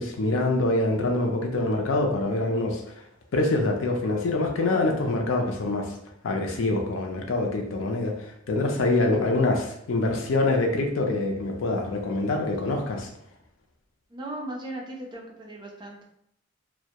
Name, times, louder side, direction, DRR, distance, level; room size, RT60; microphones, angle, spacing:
voice 1, 0.0-2.8 3.3-5.9 6.2-8.1 8.5-13.1, left 2 dB, 85° left, 2 dB, 0.5 m, -25 dB
voice 2, 14.1-16.0, right 1 dB, 25° right, -1 dB, 0.4 m, -37 dB
2.2 x 2.1 x 2.7 m, 0.75 s
head